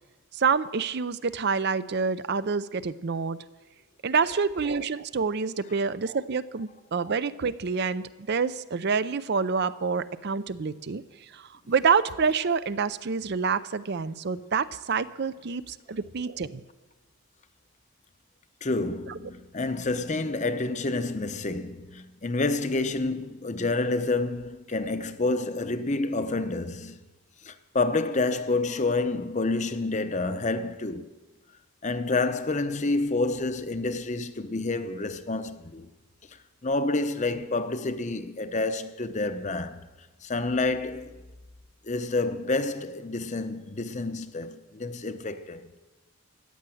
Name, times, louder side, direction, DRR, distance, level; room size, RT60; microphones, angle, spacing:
voice 1, 0.3-3.4 4.0-11.0 11.3-16.6, right 5 dB, 50° right, 0.5 m, -27 dB
voice 2, 18.6-27.0 27.4-31.1 31.8-35.9 36.3-36.4 36.6-39.9 40.2-41.2 41.8-45.7, left 3 dB, 35° left, 0.7 m, -28 dB
14.5 x 9.8 x 7.7 m
head